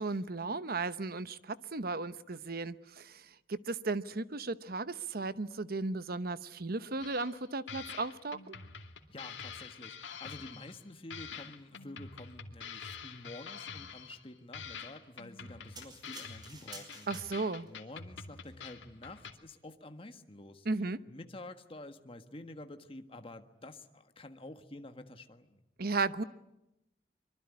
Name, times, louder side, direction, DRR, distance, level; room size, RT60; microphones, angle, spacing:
voice 1, 0.0-8.6 17.1-17.7 20.6-21.0 25.8-26.2, right 3 dB, 55° right, 1.0 m, -35 dB
sound 1, 7.0-7.4 7.7-10.8 11.1-14.3 14.5-19.3, left 6 dB, 80° left, 2.6 m, -46 dB
voice 2, 9.1-17.1 17.6-20.7 21.1-25.6, left 2 dB, 30° left, 1.5 m, -49 dB
sound 2, 15.8-17.7 18.4-18.5, right 2 dB, 25° right, 5.4 m, -51 dB
24.5 x 24.0 x 9.8 m
head